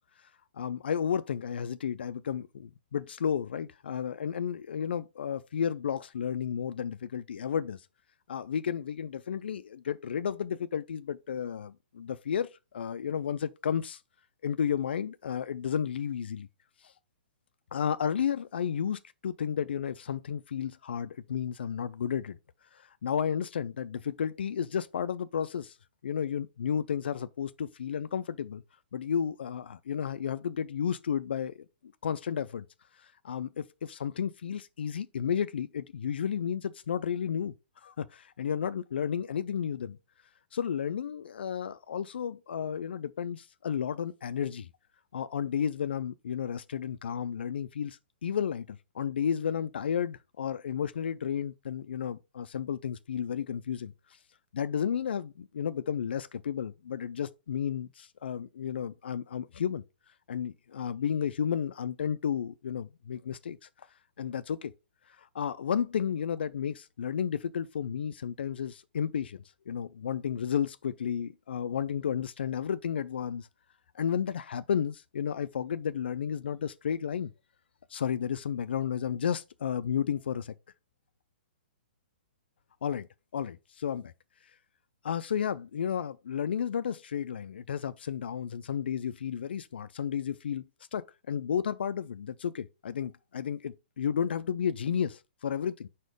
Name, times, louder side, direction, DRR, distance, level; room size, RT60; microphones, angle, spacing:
voice 1, 0.5-7.8 8.3-14.0 14.4-16.5 16.8-16.9 17.7-22.4 22.7-25.8 26.0-28.6 28.9-31.7 32.0-32.6 33.0-37.5 37.8-40.0 40.5-44.7 45.1-53.9 54.5-59.8 60.3-63.6 64.2-64.7 65.2-73.5 73.9-77.3 77.9-80.5 82.8-83.1 83.3-84.1 85.0-90.6 90.9-95.9, left 8 dB, 80° left, 0.4 m, -32 dB
4.6 x 4.3 x 5.0 m
hypercardioid pair, 165°, 6 cm